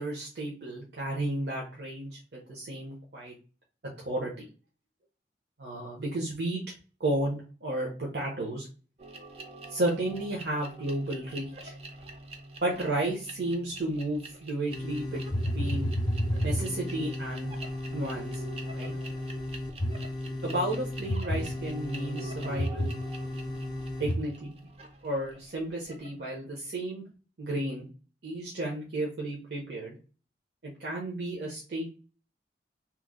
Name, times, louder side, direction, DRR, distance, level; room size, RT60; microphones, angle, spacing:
voice 1, 0.0-3.3 4.0-4.4 5.6-6.6 7.0-8.7 9.7-11.7 12.6-15.2 15.5-15.9 16.4-17.5 17.9-18.4 18.7-18.9 20.4-22.9 24.0-24.6 25.0-27.0 27.4-27.9 28.2-29.9 30.8-31.9, right 1 dB, 70° right, -3 dB, 0.8 m, -33 dB
sound 1, 9.0-26.2, right 2 dB, 35° right, 0.5 m, -46 dB
sound 2, 14.7-24.1, left 1 dB, 25° left, 0.4 m, -33 dB
3.0 x 2.0 x 3.6 m, 0.36 s
head